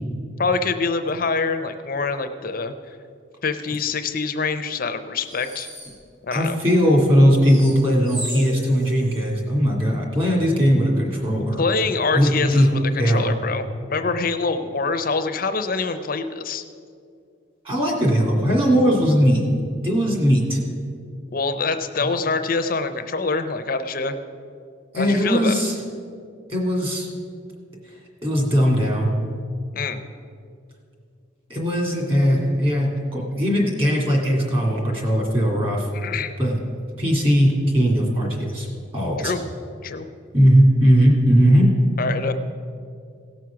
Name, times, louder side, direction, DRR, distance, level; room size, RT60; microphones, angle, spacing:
voice 1, 0.4-2.7 3.4-5.7 6.2-6.6 11.6-16.6 21.3-24.2 24.9-25.5 29.7-30.0 35.9-36.3 39.2-39.4 39.8-40.1 42.0-42.3, left 4 dB, 45° left, 9 dB, 0.6 m, -25 dB
sound 1, 5.3-5.9 7.4-9.2, right 1 dB, 75° right, 2.5 m, -34 dB
voice 2, 6.3-11.6 12.1-12.7 13.0-13.3 17.6-19.5 19.8-20.6 24.9-25.7 26.5-27.1 28.2-29.1 31.5-35.9 36.4-36.6 37.0-38.7 38.9-39.3 40.3-41.7, equal, 30° right, -1 dB, 2.3 m, -19 dB
17.0 x 6.2 x 5.8 m, 2.3 s
head